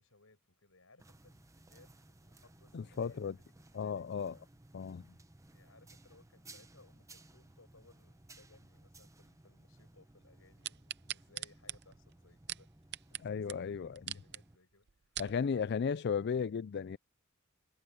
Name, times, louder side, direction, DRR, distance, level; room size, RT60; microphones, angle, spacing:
voice 1, 0.0-4.1 5.5-15.1 15.4-15.6, left 3 dB, 70° left, 7.6 m, -65 dB
sound 1, 1.0-14.6, right 2 dB, 15° right, 0.9 m, -59 dB
voice 2, 2.7-3.4 3.7-4.3 4.7-5.1 13.2-14.0 15.2-17.0, left 6 dB, 50° left, 0.4 m, -35 dB
sound 2, 10.6-13.2 13.5-13.6 14.0-14.4 14.9-15.4 16.0-16.1, right 13 dB, 50° right, 0.6 m, -41 dB
head